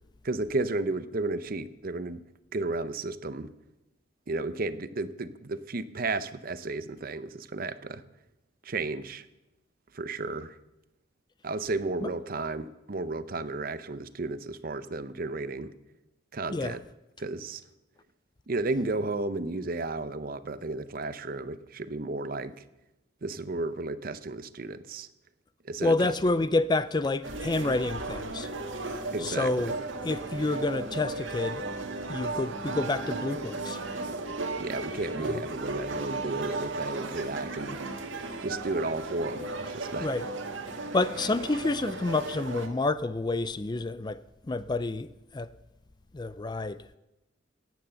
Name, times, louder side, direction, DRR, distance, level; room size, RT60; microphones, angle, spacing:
voice 1, 0.2-2.2 2.5-3.5 4.3-8.0 8.6-9.3 9.9-10.5 11.4-15.7 16.3-16.8 17.2-17.6 18.5-22.6 23.2-25.1 25.6-26.3 29.1-29.8 34.5-37.8 38.4-40.1, right 2 dB, 50° right, 0.7 m, -33 dB
voice 2, 25.8-28.5 29.2-29.8 30.0-31.6 32.1-33.8 35.2-35.4 40.0-40.3 40.9-44.2 44.5-45.5 46.1-47.0, left 2 dB, 20° left, 0.4 m, -29 dB
sound 1, 27.2-42.7, right 3 dB, 85° right, 1.7 m, -35 dB
16.5 x 9.3 x 6.8 m
head